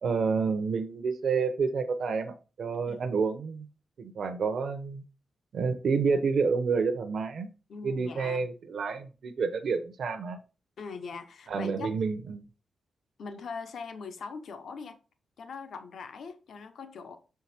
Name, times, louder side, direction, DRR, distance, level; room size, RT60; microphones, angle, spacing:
voice 1, 0.0-3.7 4.0-5.0 5.5-7.5 7.8-10.4 11.5-12.4, right 5 dB, 60° right, 0.7 m, -29 dB
voice 2, 7.7-8.4 10.8-11.9 13.2-15.0 15.4-17.2, left 5 dB, 65° left, 0.8 m, -41 dB
6.4 x 4.7 x 4.2 m
wide cardioid pair, 150°, 0 cm